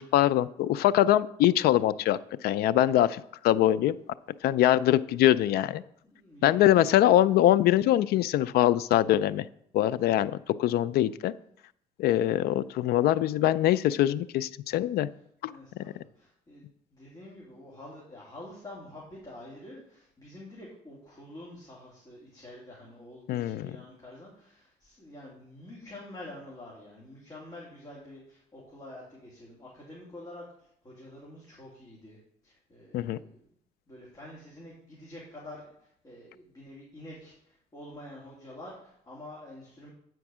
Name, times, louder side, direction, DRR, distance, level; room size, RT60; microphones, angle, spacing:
voice 1, 0.0-4.0 4.4-5.8 6.4-9.5 9.7-11.3 12.0-15.1 15.4-15.5 15.8-15.9 23.3-23.7 32.9-33.2, left 13 dB, 70° left, 16 dB, 0.4 m, -23 dB
voice 2, 6.0-6.9 15.5-33.5 33.9-39.9, left 1 dB, 25° left, -5 dB, 2.6 m, -47 dB
8.6 x 4.6 x 6.1 m, 0.71 s
cardioid pair, 110°, 17 cm